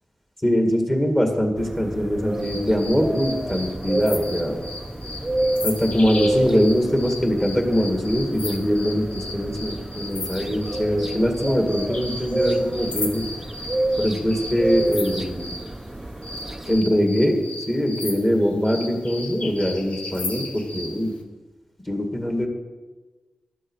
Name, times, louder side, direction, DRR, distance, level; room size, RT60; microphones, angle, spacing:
voice 1, 0.4-4.6 5.6-13.2 14.0-15.5 16.7-17.4 17.7-21.1 21.9-22.5, equal, 15° left, 2 dB, 2.0 m, -22 dB
sound 1, 1.6-16.8, right 1 dB, 15° right, 0.6 m, -29 dB
sound 2, 2.4-15.7 16.2-21.0, left 2 dB, 70° left, 1.5 m, -35 dB
13.0 x 11.0 x 4.8 m, 1.2 s
wide cardioid pair, 125°, 2 cm